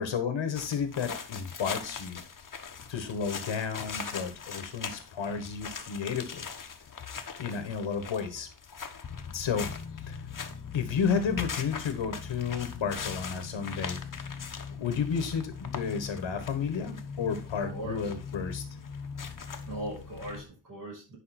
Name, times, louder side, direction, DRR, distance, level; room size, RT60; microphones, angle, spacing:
voice 1, 0.0-2.2 2.9-6.5 7.4-8.5 9.3-9.7 10.0-10.2 10.7-14.0 14.8-18.6, left 6 dB, 75° left, 8 dB, 1.4 m, -32 dB
sound 1, 0.5-20.4, left 6 dB, 45° left, 1.2 m, -40 dB
voice 2, 17.6-18.0 19.6-21.2, right 1 dB, 45° right, -2 dB, 6.2 m, -39 dB
10.5 x 5.4 x 4.2 m, 0.32 s
wide cardioid pair, 105°, 46 cm